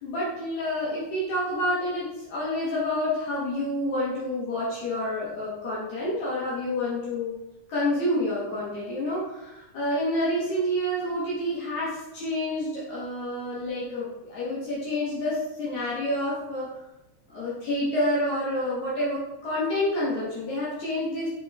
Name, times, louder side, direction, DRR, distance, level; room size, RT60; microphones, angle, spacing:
voice 1, 0.0-7.3 7.7-16.7 17.3-21.3, left 1 dB, 65° left, -7 dB, 2.5 m, -28 dB
7.7 x 3.8 x 3.5 m, 0.94 s
omnidirectional pair, 3.6 m